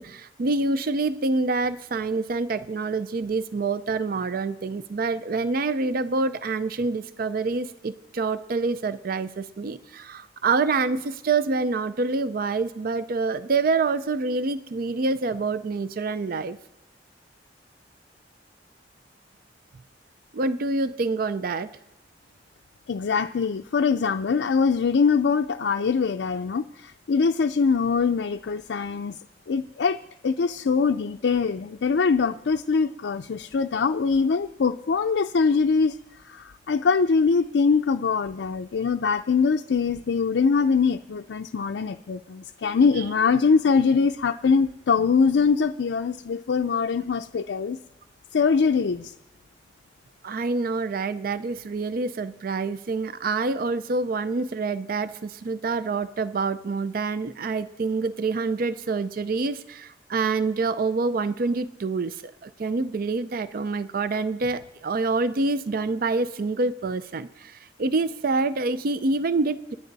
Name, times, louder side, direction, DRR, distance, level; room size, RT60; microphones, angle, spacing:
voice 1, 0.0-16.6 20.3-21.7 43.0-43.1 50.2-69.8, right 3 dB, 55° right, 13 dB, 0.5 m, -26 dB
voice 2, 22.9-29.2 29.5-30.0 30.2-35.9 36.3-47.8 48.3-49.1, left 5 dB, 80° left, 4 dB, 0.4 m, -23 dB
27.5 x 9.6 x 4.0 m, 0.97 s
head